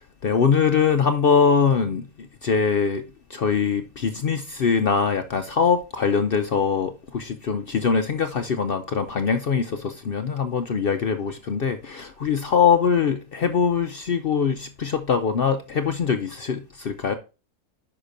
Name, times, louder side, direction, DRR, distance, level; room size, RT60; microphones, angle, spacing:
voice 1, 0.2-3.0 3.3-17.1, left 6 dB, 60° left, 0.5 m, -22 dB
9.8 x 5.9 x 2.6 m
omnidirectional pair, 1.6 m